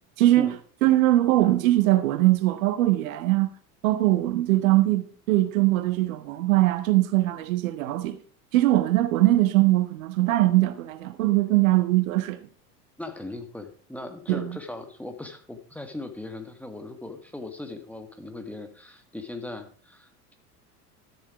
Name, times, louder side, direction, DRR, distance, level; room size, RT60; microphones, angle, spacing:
voice 1, 0.2-0.5 0.8-3.5 3.8-8.2 8.5-12.4 14.3-14.6, right 16 dB, 55° right, 1.0 m, -21 dB
voice 2, 13.0-20.3, left 2 dB, 5° left, 1.5 m, -38 dB
13.0 x 7.2 x 4.8 m
figure-of-eight pair, 80°, 48 cm